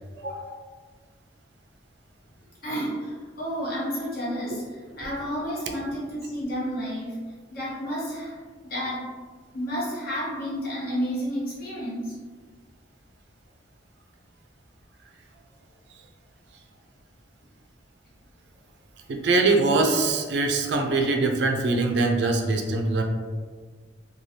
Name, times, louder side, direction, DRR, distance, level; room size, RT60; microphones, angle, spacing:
voice 1, 0.1-0.6 2.6-4.6 5.0-7.2 7.5-8.4 8.6-9.1 9.5-12.2, equal, 50° left, -7 dB, 1.0 m, -31 dB
voice 2, 19.1-23.0, right 3 dB, 60° right, 3 dB, 0.4 m, -22 dB
3.1 x 2.3 x 2.7 m, 1.5 s
head